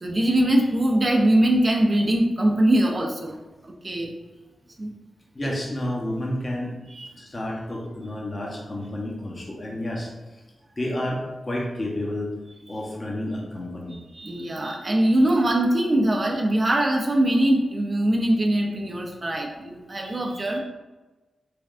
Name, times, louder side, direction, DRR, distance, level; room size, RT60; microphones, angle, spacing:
voice 1, 0.0-4.1 4.8-4.9 6.9-7.3 14.1-20.6, right 1 dB, 45° right, 1 dB, 0.5 m, -22 dB
voice 2, 5.3-6.8 7.1-10.1 10.8-12.3 12.7-14.0, left 1 dB, 40° left, -2 dB, 0.8 m, -30 dB
3.4 x 3.2 x 2.4 m, 1.1 s
cardioid pair, 45°, 0 cm